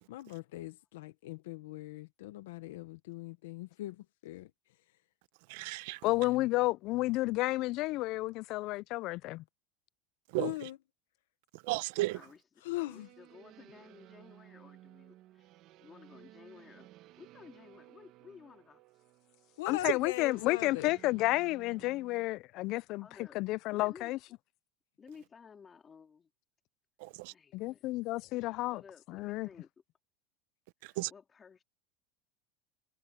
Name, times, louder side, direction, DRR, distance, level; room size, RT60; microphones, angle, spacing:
voice 1, 0.1-4.5 10.4-10.8 12.6-13.1 19.6-20.9, left 17 dB, 85° left, 1.1 m, -40 dB
voice 2, 5.5-6.0 10.3-10.7 11.5-12.2 27.0-27.3 30.8-31.1, right 19 dB, 70° right, 1.0 m, -35 dB
voice 3, 6.0-9.4 19.7-23.1 23.3-24.2 27.5-28.8 29.1-29.5, left 19 dB, 50° left, 0.4 m, -31 dB
voice 4, 12.7-15.5 15.8-16.9 17.2-18.8 23.0-23.4 23.7-24.4 25.0-26.3 27.3-27.8 28.7-29.7 30.8-31.6, left 6 dB, 20° left, 2.5 m, -55 dB
sound 1, 12.8-22.3, right 15 dB, 50° right, 1.5 m, -57 dB
supercardioid pair, 140°, 0 cm